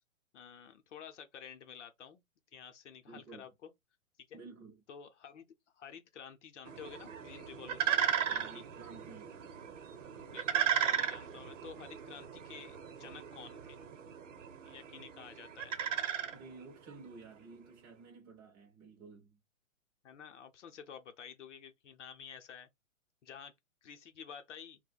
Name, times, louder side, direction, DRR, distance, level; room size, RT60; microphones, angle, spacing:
voice 1, 0.3-2.2 2.5-3.7 4.2-4.4 4.9-5.5 5.7-8.6 10.2-13.8 14.6-15.7 20.0-22.7 23.2-23.5 23.8-24.8, left 7 dB, 60° left, 0.7 m, -51 dB
voice 2, 3.1-3.4 4.3-4.8 8.3-9.4 16.3-19.4, right 4 dB, 15° right, 0.5 m, -53 dB
sound 1, 6.7-17.0, right 9 dB, 65° right, 0.8 m, -36 dB
2.4 x 2.1 x 3.9 m
hypercardioid pair, 160°, 41 cm